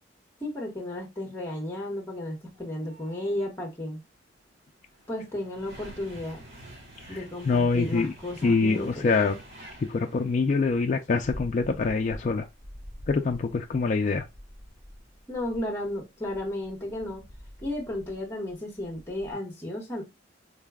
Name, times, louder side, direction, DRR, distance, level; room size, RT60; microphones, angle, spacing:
voice 1, 0.4-4.0 5.1-6.4 7.1-9.1 15.3-17.2 17.6-20.0, left 1 dB, 10° left, 0.9 m, -33 dB
sound 1, 2.5-3.4 4.3-19.3, equal, 60° right, 1.9 m, -47 dB
voice 2, 7.1-8.1 8.4-9.4 9.9-12.5 13.1-14.3, left 4 dB, 40° left, 0.3 m, -25 dB
3.9 x 2.1 x 3.4 m
head